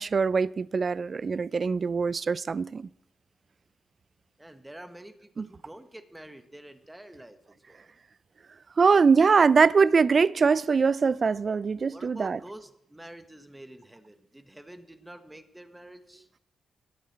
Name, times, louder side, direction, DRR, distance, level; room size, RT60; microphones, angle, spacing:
voice 1, 0.0-2.9 5.4-5.5 8.8-12.4, right 5 dB, 45° right, 0.3 m, -22 dB
voice 2, 4.4-7.4 7.7-7.9 11.9-16.3, right 1 dB, 10° right, 1.3 m, -47 dB
21.0 x 7.2 x 4.3 m
cardioid pair, 85°, 0 cm